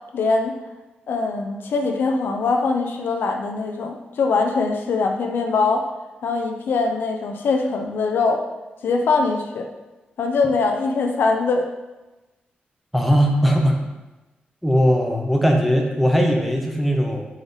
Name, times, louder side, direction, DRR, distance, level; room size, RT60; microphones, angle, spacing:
voice 1, 0.1-0.5 1.1-5.9 6.2-8.4 8.8-9.7 10.2-11.7, left 4 dB, 75° left, 3 dB, 0.5 m, -22 dB
voice 2, 12.9-13.8 14.6-17.2, equal, ahead, 1 dB, 0.6 m, -19 dB
3.8 x 3.4 x 3.8 m, 1.1 s
wide cardioid pair, 110°, 4 cm